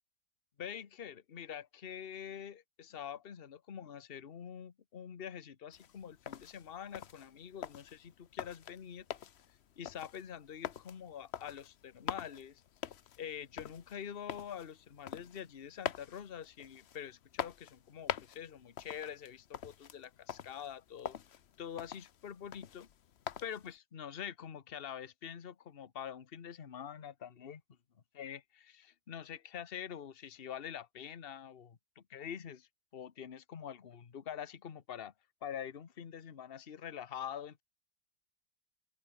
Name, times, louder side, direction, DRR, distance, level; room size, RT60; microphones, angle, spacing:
voice 1, 0.6-9.1 9.8-12.6 13.2-21.2 21.6-22.9 23.4-27.6 28.1-35.1 35.4-37.6, left 8 dB, 35° left, 1.2 m, -45 dB
sound 1, 5.7-23.8, left 9 dB, 55° left, 0.8 m, -45 dB
open air
omnidirectional pair, 1.9 m